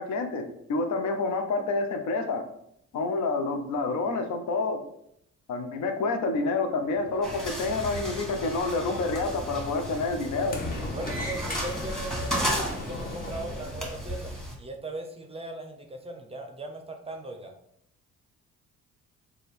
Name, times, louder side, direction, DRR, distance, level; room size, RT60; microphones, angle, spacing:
voice 1, 0.0-2.4 2.9-4.8 5.5-10.6, left 3 dB, 70° left, 6 dB, 0.6 m, -28 dB
Sliding door, 6.8-13.8, left 2 dB, 30° left, 0.8 m, -39 dB
sound 1, 7.2-14.5, equal, ahead, 1.2 m, -34 dB
voice 2, 10.9-17.5, right 2 dB, 20° right, 4 dB, 0.5 m, -39 dB
3.3 x 2.3 x 4.2 m, 0.74 s
cardioid pair, 90°, 30 cm